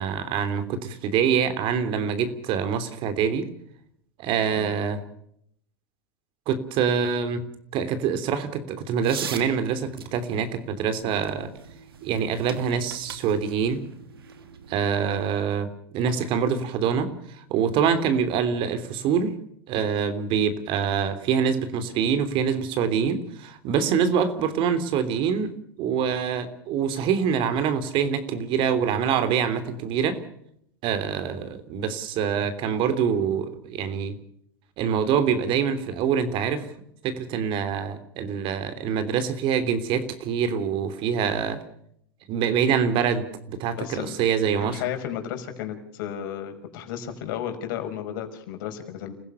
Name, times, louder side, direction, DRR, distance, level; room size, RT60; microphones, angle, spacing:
voice 1, 0.0-3.5 4.2-5.0 6.5-7.4 7.7-11.5 12.0-13.8 14.7-19.3 19.7-25.5 25.8-30.2 30.8-34.2 34.8-36.7 37.0-41.6 42.3-44.8, right 7 dB, 45° right, 10 dB, 3.2 m, -25 dB
sound 1, 9.0-15.6, right 7 dB, 90° right, 2.7 m, -42 dB
voice 2, 43.8-44.3 44.6-49.1, left 9 dB, 65° left, 6 dB, 5.6 m, -33 dB
29.5 x 16.0 x 7.0 m, 0.71 s
hypercardioid pair, 115°, 12 cm